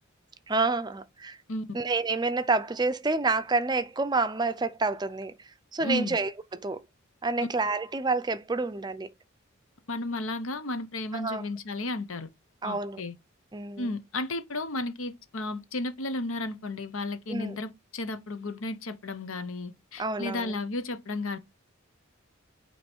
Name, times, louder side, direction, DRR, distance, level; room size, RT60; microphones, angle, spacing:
voice 1, 0.5-1.4 1.7-5.3 5.7-6.8 7.2-9.1 11.1-11.4 12.6-13.0 13.5-13.9 17.3-17.6 20.0-20.5, right 3 dB, 20° right, 0.5 m, -28 dB
voice 2, 5.8-6.2 9.9-12.3 12.6-13.1 13.8-21.4, left 2 dB, 75° left, 0.9 m, -33 dB
8.5 x 3.1 x 4.4 m
head